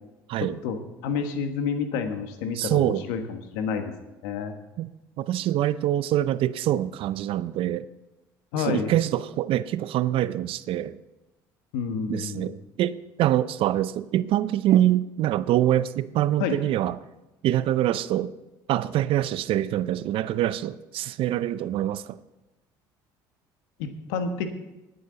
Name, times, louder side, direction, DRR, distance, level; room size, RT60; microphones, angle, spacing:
voice 1, 0.6-3.9 4.2-4.5 8.5-8.9 11.7-12.6 16.4-16.6 23.8-24.5, left 6 dB, 80° left, 1.5 m, -29 dB
voice 2, 2.6-3.0 4.8-4.9 5.2-7.9 8.6-11.0 12.1-17.0 17.4-18.3 18.7-22.2, right 12 dB, 60° right, 0.6 m, -25 dB
19.5 x 8.6 x 4.0 m
supercardioid pair, 75°, 10 cm